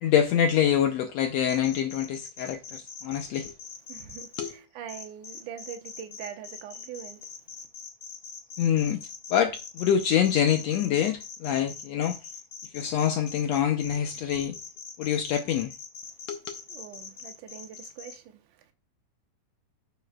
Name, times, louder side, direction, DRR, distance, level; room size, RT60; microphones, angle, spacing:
voice 1, 0.0-3.5 4.4-4.6 8.6-12.2 12.7-14.6 15.0-15.7 16.3-16.6, left 9 dB, 75° left, 1.6 m, -26 dB
sound 1, 1.5-4.5 4.9-18.1, left 6 dB, 55° left, 2.4 m, -42 dB
voice 2, 3.9-7.3 16.7-18.7, right 9 dB, 90° right, 2.4 m, -43 dB
11.0 x 7.5 x 2.2 m
omnidirectional pair, 3.6 m